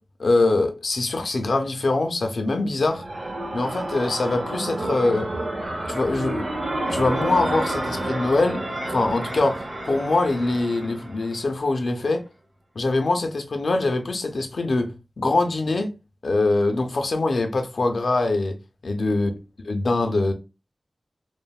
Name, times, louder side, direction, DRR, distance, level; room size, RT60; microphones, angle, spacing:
voice 1, 0.2-3.0 3.5-5.3 5.9-6.5 6.9-8.6 8.9-12.2 12.8-15.9 16.2-18.5 18.8-19.3 19.7-20.3, left 2 dB, 85° left, 0.4 m, -23 dB
sound 1, 2.6-11.4, right 1 dB, 85° right, 0.6 m, -30 dB
3.0 x 2.0 x 2.3 m
wide cardioid pair, 65°, 0 cm